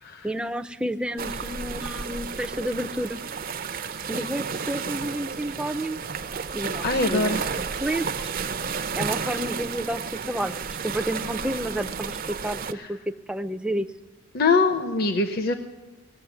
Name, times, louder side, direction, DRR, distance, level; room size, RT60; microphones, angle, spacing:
voice 1, 0.2-3.2 4.1-6.0 6.5-8.3 8.9-10.5 10.8-13.9, right 1 dB, 5° right, 7 dB, 0.5 m, -30 dB
sound 1, 1.2-12.7, right 5 dB, 45° right, 0.6 m, -32 dB
voice 2, 6.8-7.6 12.7-12.9 14.3-15.5, left 3 dB, 50° left, 7 dB, 0.9 m, -23 dB
19.0 x 7.6 x 9.5 m, 1.2 s
head